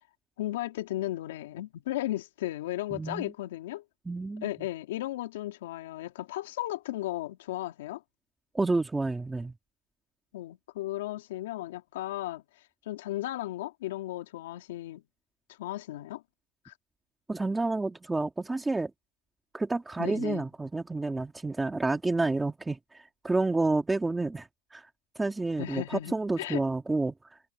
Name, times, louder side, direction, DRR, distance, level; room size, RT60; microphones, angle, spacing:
voice 1, 0.4-3.8 4.4-8.0 10.3-15.0 15.5-16.2 16.6-16.7 20.0-20.4 25.6-26.6, left 15 dB, 80° left, 3.0 m, -35 dB
voice 2, 2.9-3.3 4.0-4.5 8.5-9.5 17.3-18.9 19.5-24.9 25.1-27.4, right 3 dB, 5° right, 1.7 m, -29 dB
supercardioid pair, 160°, 0 cm